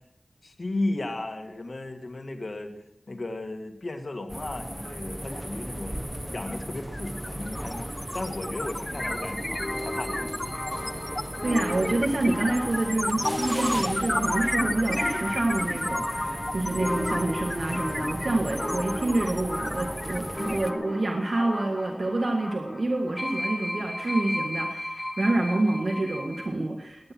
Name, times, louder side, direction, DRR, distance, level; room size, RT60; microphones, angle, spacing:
voice 1, 0.4-2.8 3.1-6.0 6.3-7.9 8.1-10.6, left 2 dB, 65° left, 5 dB, 2.0 m, -35 dB
sound 1, 4.3-20.7, equal, 5° right, 1.4 m, -37 dB
sound 2, 6.5-6.6 6.9-21.3, left 1 dB, 20° left, 0.8 m, -32 dB
sound 3, 8.9-26.5, left 1 dB, 35° left, 6.9 m, -35 dB
voice 2, 11.4-27.1, right 2 dB, 75° right, 2 dB, 1.8 m, -27 dB
21.0 x 10.0 x 6.1 m, 0.82 s
wide cardioid pair, 50°, 0 cm